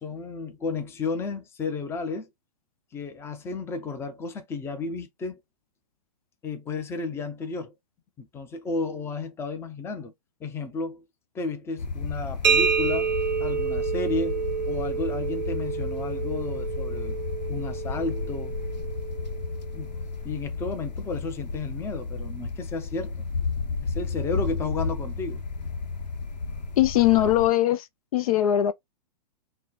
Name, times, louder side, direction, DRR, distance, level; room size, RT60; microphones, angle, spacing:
voice 1, 0.0-2.3 2.9-5.4 6.4-7.7 8.2-10.1 10.4-11.0 11.3-13.1 13.4-17.2 17.5-18.6 19.7-19.9 20.2-23.2 23.8-25.4, left 3 dB, 10° left, 0.6 m, -33 dB
sound 1, 11.8-27.5, left 4 dB, 85° left, 0.9 m, -32 dB
sound 2, 12.4-20.0, right 6 dB, 80° right, 0.6 m, -29 dB
voice 2, 26.8-27.9 28.1-28.7, left 12 dB, 55° left, 0.4 m, -20 dB
4.0 x 2.2 x 4.0 m
hypercardioid pair, 140°, 21 cm